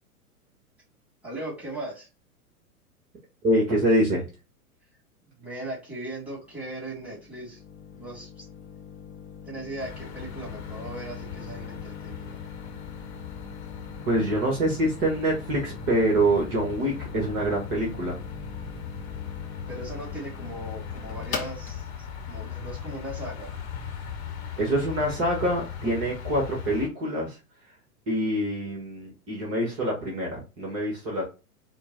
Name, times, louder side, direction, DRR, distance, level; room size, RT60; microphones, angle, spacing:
voice 1, 1.2-2.1 5.4-7.6 7.9-8.7 9.5-12.4 19.7-21.9 22.3-23.5, right 1 dB, 5° right, -6 dB, 2.1 m, -38 dB
voice 2, 3.4-4.2 14.1-18.2 24.6-27.4 27.6-27.8 28.1-31.2, right 1 dB, 30° right, -2 dB, 1.5 m, -25 dB
sound 1, 6.2-23.9, left 7 dB, 15° left, 0.5 m, -42 dB
sound 2, 9.8-26.9, left 6 dB, 45° left, 1.0 m, -39 dB
4.5 x 2.3 x 3.9 m, 0.30 s
figure-of-eight pair, 105°, 46 cm